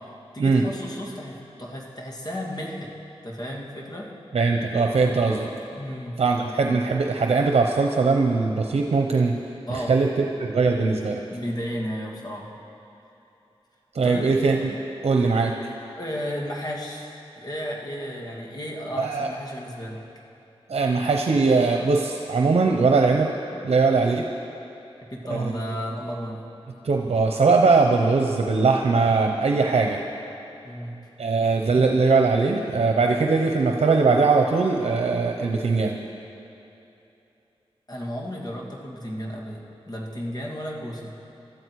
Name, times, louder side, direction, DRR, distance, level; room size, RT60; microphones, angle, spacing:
voice 1, 0.3-2.9 3.2-4.1 5.7-6.2 9.7-10.0 11.3-12.5 14.0-14.3 16.0-20.0 25.1-26.4 30.6-31.0 37.9-41.2, equal, 40° left, -1 dB, 2.2 m, -33 dB
voice 2, 4.3-5.5 6.2-9.4 9.7-11.2 13.9-14.7 15.0-15.5 19.0-19.3 20.7-23.3 23.6-24.2 25.3-25.5 26.8-30.0 31.2-36.0, right 4 dB, 80° right, 2 dB, 0.8 m, -21 dB
22.0 x 13.0 x 4.8 m, 2.9 s
wide cardioid pair, 85°, 10 cm